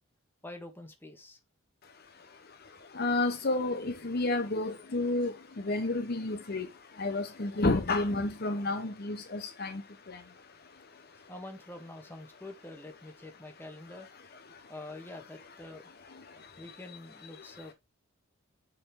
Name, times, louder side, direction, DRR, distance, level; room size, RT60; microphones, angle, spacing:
voice 1, 0.4-1.4 11.3-14.1 14.7-15.9 16.6-17.7, left 2 dB, 10° left, 1.4 m, -46 dB
voice 2, 3.0-5.3 5.6-6.7 7.0-9.8, left 2 dB, 50° left, 0.9 m, -30 dB
6.6 x 4.3 x 4.6 m
head